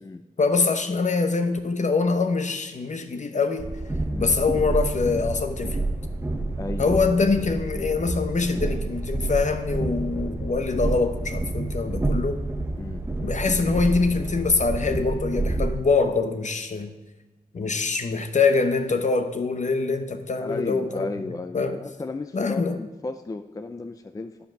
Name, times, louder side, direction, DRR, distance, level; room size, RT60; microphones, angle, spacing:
voice 1, 0.4-3.7 4.2-5.8 6.8-12.5 13.2-16.9 17.5-21.1 21.5-21.8 22.3-22.8, left 4 dB, 55° left, 8 dB, 0.9 m, -24 dB
Train, 3.6-15.8, right 2 dB, 15° right, 0.9 m, -29 dB
voice 2, 6.6-7.0 12.8-13.0 20.4-24.4, left 3 dB, 25° left, 9 dB, 0.4 m, -34 dB
10.5 x 5.2 x 6.0 m, 1.1 s
wide cardioid pair, 85°, 15 cm